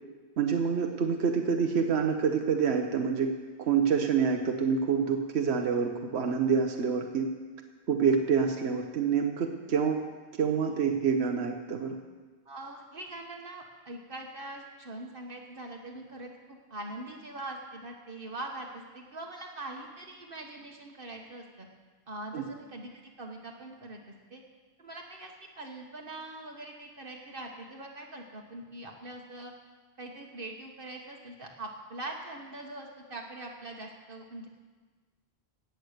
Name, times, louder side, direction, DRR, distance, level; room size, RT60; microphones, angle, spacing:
voice 1, 0.4-3.3 3.6-7.3 7.9-10.0 10.4-12.0 22.3-22.4, right 6 dB, 75° right, 4 dB, 1.2 m, -27 dB
voice 2, 12.4-21.7 22.1-24.0 24.3-24.4 24.8-25.3 25.6-29.5 30.0-34.5, right 2 dB, 55° right, 1 dB, 1.4 m, -42 dB
17.5 x 8.3 x 6.6 m, 1.4 s
omnidirectional pair, 1.1 m